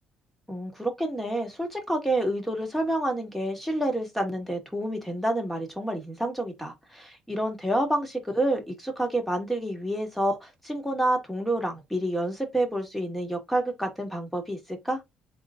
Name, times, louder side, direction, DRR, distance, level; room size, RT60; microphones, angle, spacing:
voice 1, 0.5-15.0, right 1 dB, 5° left, 1.9 m, -28 dB
3.8 x 3.7 x 3.7 m
cardioid pair, 110°, 3 cm